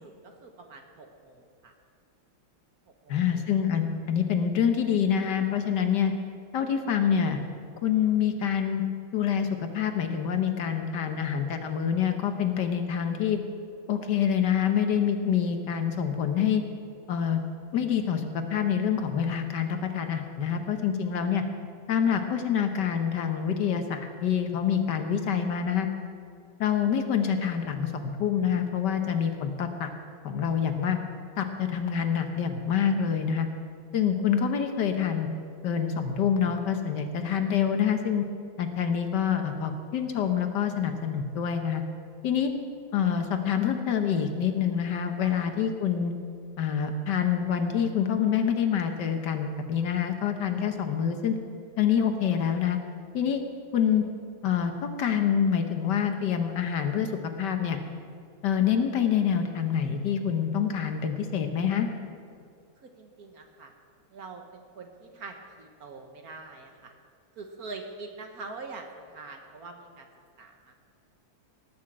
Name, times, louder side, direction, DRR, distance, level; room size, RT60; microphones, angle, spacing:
voice 1, 0.0-1.7 2.9-3.5 45.2-45.7 62.8-63.7 64.1-66.9 67.3-70.1 70.4-70.7, right 3 dB, 55° right, 4 dB, 1.4 m, -44 dB
voice 2, 3.1-6.1 6.5-7.4 7.8-8.8 9.1-13.4 13.9-16.6 17.1-17.4 17.7-21.4 21.9-25.9 26.6-29.9 30.2-31.0 31.4-33.5 33.9-35.3 35.6-38.3 38.6-41.8 42.2-42.5 42.9-46.1 46.6-51.4 51.8-52.8 53.1-53.4 53.7-54.0 54.4-57.8 58.4-61.9, left 8 dB, 65° left, 7 dB, 1.4 m, -26 dB
18.5 x 6.3 x 7.5 m, 2.3 s
omnidirectional pair, 2.1 m